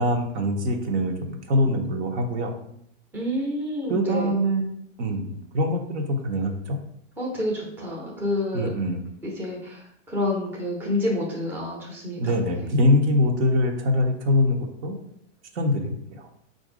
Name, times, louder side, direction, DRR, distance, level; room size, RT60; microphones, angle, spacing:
voice 1, 0.0-2.5 3.9-6.8 8.5-9.0 12.2-15.0 15.5-16.3, left 1 dB, 65° right, 3 dB, 0.9 m, -24 dB
voice 2, 3.1-4.4 7.2-8.7 9.2-12.4, left 1 dB, 5° right, -4 dB, 0.6 m, -28 dB
4.1 x 2.6 x 4.9 m, 0.73 s
supercardioid pair, 150°, 37 cm